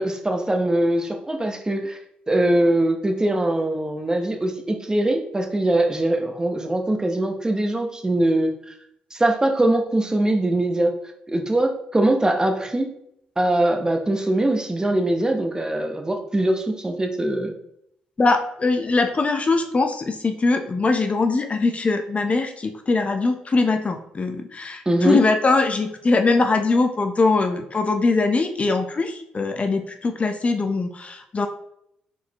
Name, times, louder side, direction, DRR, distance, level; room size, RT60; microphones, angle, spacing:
voice 1, 0.0-2.0 2.3-8.5 9.1-10.9 11.3-12.9 13.4-17.5 24.9-25.2, right 1 dB, 20° right, 3 dB, 0.8 m, -22 dB
voice 2, 18.2-31.5, left 3 dB, 35° left, 6 dB, 0.6 m, -22 dB
4.2 x 4.1 x 2.9 m, 0.74 s
hypercardioid pair, 50°, 4 cm